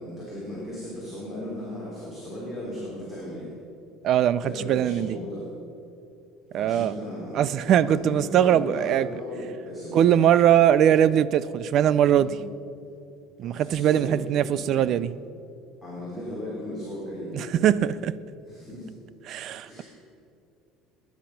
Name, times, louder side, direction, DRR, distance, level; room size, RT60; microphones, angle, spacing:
voice 1, 0.0-3.5 4.4-5.5 6.5-10.1 12.1-12.4 13.4-14.9 15.8-17.4 18.5-18.9 19.6-19.8, left 1 dB, 10° right, -7 dB, 3.4 m, -36 dB
voice 2, 4.0-5.2 6.5-7.0 7.3-9.2 9.9-12.4 13.4-15.1 17.3-18.1 19.2-19.8, right 10 dB, 40° right, 17 dB, 0.4 m, -21 dB
20.5 x 10.5 x 5.8 m, 2.6 s
cardioid pair, 170°, 0 cm